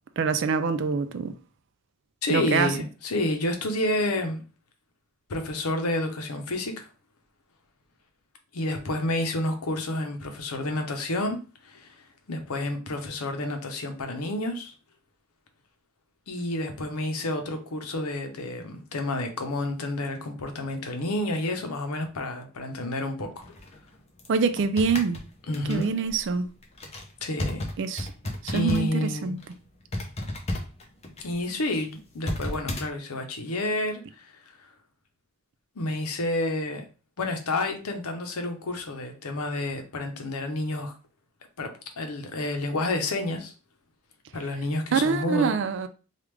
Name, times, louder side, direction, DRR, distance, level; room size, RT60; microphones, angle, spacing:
voice 1, 0.2-1.3 2.3-2.7 24.3-25.2 25.7-26.5 27.8-28.1 28.4-29.4 44.9-45.9, right 5 dB, 55° right, 0.3 m, -25 dB
voice 2, 2.2-4.4 5.3-6.9 8.5-14.7 16.3-23.4 25.5-25.9 27.2-27.7 28.5-29.3 31.2-34.3 35.8-36.8 37.2-40.9 41.6-43.5 44.3-45.5, left 1 dB, 90° left, 0.7 m, -30 dB
sound 1, 23.4-29.0 29.3-29.5 29.9-32.9, left 1 dB, 30° left, 0.6 m, -34 dB
3.4 x 2.4 x 3.1 m
head